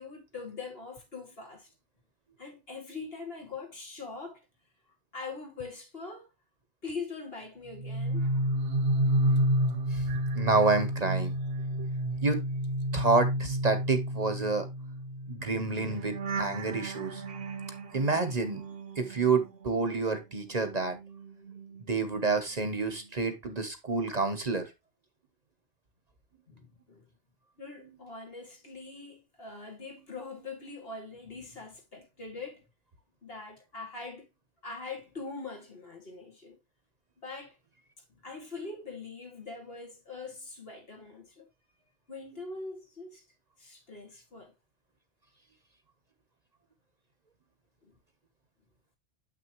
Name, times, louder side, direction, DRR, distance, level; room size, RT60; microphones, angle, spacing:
voice 1, 0.0-1.7 2.4-4.4 5.1-6.3 6.8-8.3 26.5-27.0 27.6-32.6 33.2-34.3 34.6-36.6 37.2-37.6 38.2-41.5 42.1-43.3 43.6-44.5 47.8-47.9, left 4 dB, 65° left, 2.5 m, -42 dB
sound 1, 7.7-20.0 20.3-22.4 22.7-23.1, right 1 dB, 65° right, 1.0 m, -31 dB
voice 2, 10.3-11.3 11.8-11.9 12.2-12.4 12.9-14.7 15.3-17.2 17.9-18.6 19.0-21.0 21.8-24.7, right 3 dB, 40° right, 1.0 m, -28 dB
7.6 x 6.1 x 3.0 m
omnidirectional pair, 1.1 m